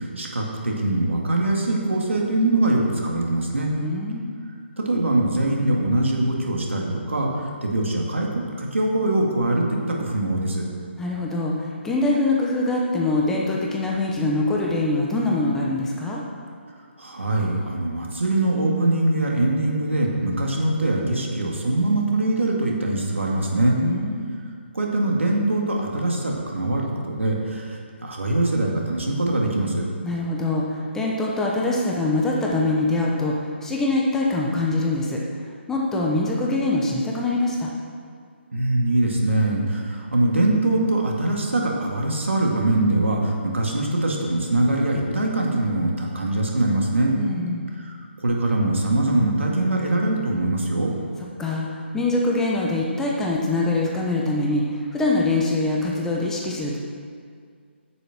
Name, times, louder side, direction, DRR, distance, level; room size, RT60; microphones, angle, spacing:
voice 1, 0.0-3.8 4.8-10.6 17.0-23.8 24.7-29.8 38.5-47.1 47.8-48.0 48.2-50.9, right 2 dB, 90° right, -1 dB, 2.1 m, -23 dB
voice 2, 3.8-4.3 11.0-16.2 23.8-24.3 30.0-35.2 35.7-37.7 47.2-47.7 51.4-56.8, left 2 dB, 5° left, -3 dB, 1.0 m, -24 dB
9.7 x 7.0 x 6.1 m, 2.1 s
figure-of-eight pair, 150°, 7 cm